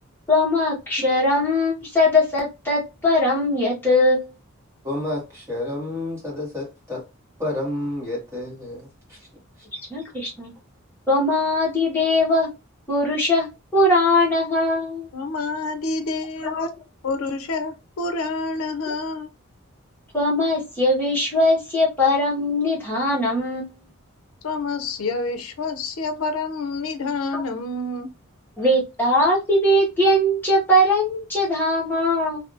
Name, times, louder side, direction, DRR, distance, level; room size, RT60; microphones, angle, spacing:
voice 1, 0.3-4.3 9.9-10.5 11.1-12.5 12.9-13.5 13.7-15.1 16.4-16.5 20.1-23.7 27.3-27.4 28.6-32.4, left 1 dB, 10° left, 1.4 m, -20 dB
voice 2, 4.8-7.0 7.4-9.2, left 1 dB, 15° right, 1.5 m, -30 dB
voice 3, 15.1-16.7 17.0-19.3 24.4-28.1, left 3 dB, 80° left, 0.5 m, -28 dB
3.3 x 2.6 x 2.6 m
head